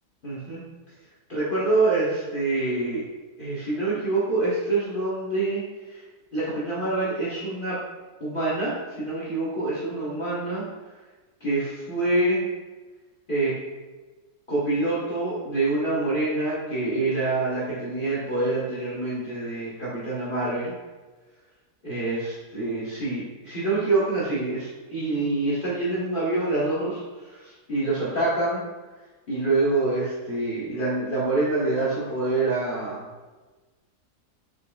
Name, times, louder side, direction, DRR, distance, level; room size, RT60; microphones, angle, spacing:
voice 1, 0.2-0.6 1.3-3.0 3.4-5.6 5.9-6.0 6.3-7.8 8.2-10.6 11.4-12.4 13.3-13.5 14.5-20.7 21.8-28.6 29.3-33.0, right 2 dB, 40° left, -9 dB, 1.0 m, -26 dB
4.8 x 4.3 x 2.3 m, 1.3 s
omnidirectional pair, 1.7 m